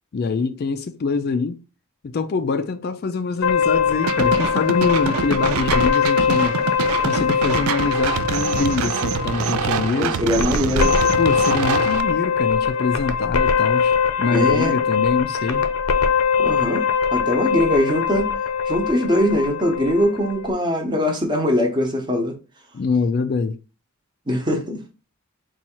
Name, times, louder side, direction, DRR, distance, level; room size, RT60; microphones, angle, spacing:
voice 1, 0.1-1.6 2.0-6.6 7.0-10.2 11.2-15.6 22.7-23.6, left 4 dB, 45° left, 0.3 m, -24 dB
sound 1, 3.4-20.5, left 6 dB, 90° left, 0.7 m, -22 dB
sound 2, 4.1-12.0, right 7 dB, 80° right, 0.4 m, -25 dB
voice 2, 9.9-11.0 14.3-14.7 16.4-16.8 17.1-18.3 18.6-22.4 24.3-24.8, left 1 dB, 20° right, 0.8 m, -21 dB
4.2 x 2.4 x 4.4 m
head